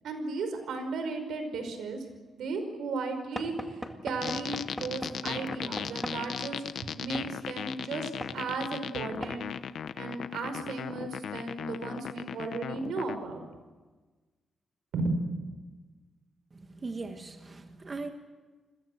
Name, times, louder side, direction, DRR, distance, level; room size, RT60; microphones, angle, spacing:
voice 1, 0.0-2.0 2.3-6.6 6.9-9.5 10.0-13.5 14.9-15.2, right 3 dB, 85° right, 7 dB, 5.3 m, -35 dB
Knock / Wood, 3.4-6.2 7.1-7.3 8.2-8.4 9.2-9.4, equal, 5° left, 1.9 m, -39 dB
sound 1, 4.2-13.2, left 8 dB, 70° left, 0.9 m, -37 dB
voice 2, 16.5-18.1, right 3 dB, 25° right, 5 dB, 1.5 m, -39 dB
29.0 x 22.0 x 8.0 m, 1.3 s
wide cardioid pair, 165°, 0 cm